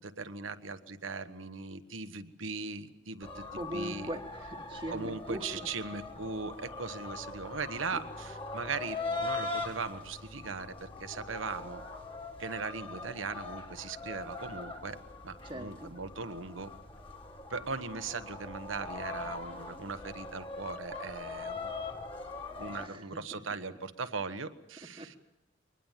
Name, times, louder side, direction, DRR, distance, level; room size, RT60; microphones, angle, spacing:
voice 1, 0.0-4.1 4.7-11.8 12.4-15.0 15.2-16.7 17.5-21.7 22.6-25.2, right 4 dB, 85° right, 10 dB, 1.3 m, -39 dB
sound 1, 3.2-22.9, left 3 dB, 25° left, 2.1 m, -41 dB
voice 2, 3.6-5.4 7.9-8.0 15.4-15.9 22.7-23.2 25.0-25.2, right 1 dB, 25° right, -1 dB, 1.3 m, -40 dB
23.5 x 20.0 x 7.4 m, 1.0 s
head